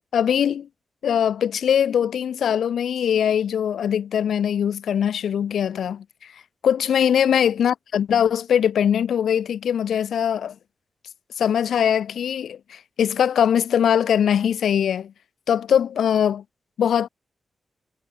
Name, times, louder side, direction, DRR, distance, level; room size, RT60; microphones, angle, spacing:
voice 1, 0.1-0.7 1.0-6.0 6.6-10.5 11.4-15.1 15.5-16.4 16.8-17.1, left 8 dB, 90° left, 0.7 m, -21 dB
wide cardioid pair, 135°, 0 cm